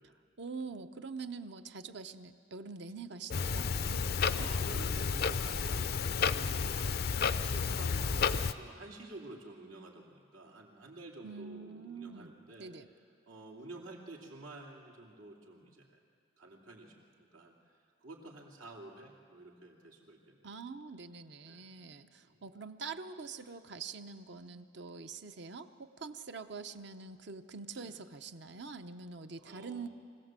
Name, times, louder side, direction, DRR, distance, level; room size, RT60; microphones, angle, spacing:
voice 1, 0.4-4.8 11.2-12.3 12.6-12.9 20.4-29.9, right 4 dB, 55° right, 9 dB, 0.8 m, -45 dB
Clock, 3.3-8.5, left 5 dB, 50° left, 0.5 m, -31 dB
voice 2, 4.3-7.1 7.4-12.7 13.3-16.0 16.4-17.5 18.0-20.5 21.5-21.7 22.2-22.4 27.7-27.9 29.4-29.9, right 2 dB, 85° right, -1 dB, 2.9 m, -50 dB
24.0 x 16.5 x 7.5 m, 2.3 s
head